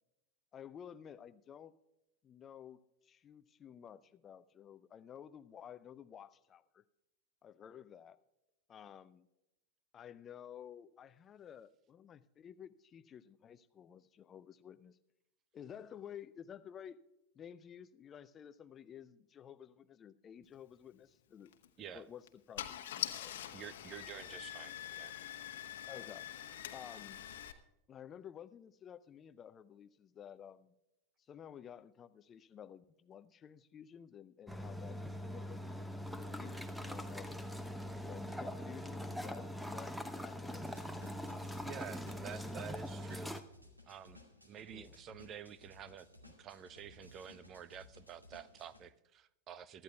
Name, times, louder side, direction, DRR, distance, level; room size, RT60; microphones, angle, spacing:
voice 1, 0.5-1.7 2.2-6.8 7.4-8.2 8.7-9.3 9.9-15.0 15.5-17.0 17.4-21.5 21.9-23.5 25.9-26.3 26.7-27.2 27.9-30.7 31.3-37.3 38.0-40.6 44.7-45.0, left 9 dB, 25° left, 15 dB, 0.5 m, -53 dB
Car / Engine starting, 21.5-21.7 22.3-22.4 22.6-27.5, left 11 dB, 60° left, 1.0 m, -44 dB
voice 2, 23.5-25.1 41.6-43.3 43.8-49.8, right 9 dB, 30° right, 19 dB, 0.5 m, -50 dB
sound 1, 34.5-43.4, equal, ahead, 0.8 m, -42 dB
sound 2, 40.5-48.8, left 1 dB, 85° right, 2.2 m, -59 dB
23.5 x 13.0 x 2.3 m, 0.95 s
figure-of-eight pair, 90°, 0 cm